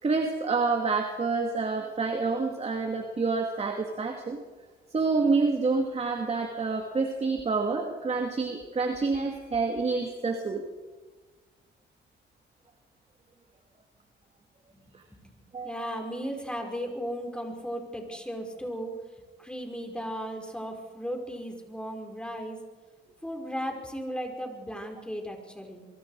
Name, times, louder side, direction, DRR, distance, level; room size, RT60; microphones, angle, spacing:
voice 1, 0.0-4.4 4.9-10.6 14.9-15.0 15.5-15.9, right 4 dB, 30° right, 3 dB, 2.5 m, -28 dB
voice 2, 15.6-18.9 19.4-22.6 23.2-25.8, equal, 5° left, 3 dB, 5.0 m, -36 dB
25.0 x 23.5 x 4.9 m, 1.3 s
cardioid pair, 90°, 20 cm